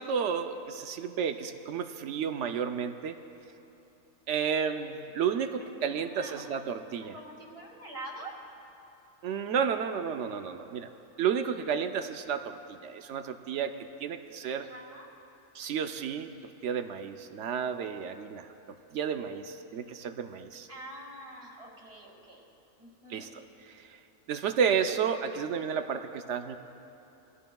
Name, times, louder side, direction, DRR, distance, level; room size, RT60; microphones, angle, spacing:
voice 1, 0.0-3.2 4.3-7.1 9.2-10.9 11.2-14.7 15.5-20.7 23.1-24.0 24.3-26.6, right 7 dB, 65° right, 8 dB, 0.8 m, -32 dB
voice 2, 5.6-6.5 7.1-8.4 14.5-15.1 20.7-22.4 22.8-23.3, right 1 dB, 25° right, -1 dB, 2.0 m, -46 dB
23.0 x 14.0 x 2.3 m, 3.0 s
omnidirectional pair, 1.6 m